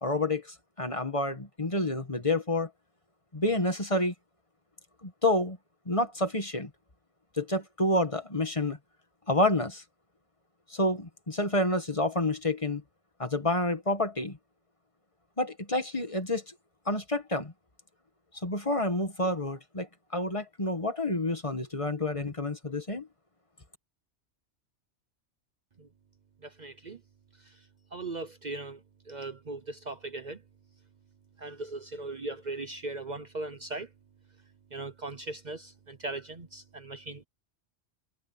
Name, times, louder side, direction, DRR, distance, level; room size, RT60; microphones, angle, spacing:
voice 1, 0.0-2.7 3.3-4.1 5.0-5.6 5.8-6.7 7.4-8.8 9.3-9.8 10.7-12.8 13.2-14.4 15.4-16.5 16.8-17.5 18.4-23.1, left 1 dB, 30° left, 1.7 m, -29 dB
voice 2, 26.4-27.0 27.4-27.6 27.9-30.4 31.4-33.9 34.7-37.2, right 2 dB, 40° right, 1.0 m, -39 dB
omnidirectional pair, 1.2 m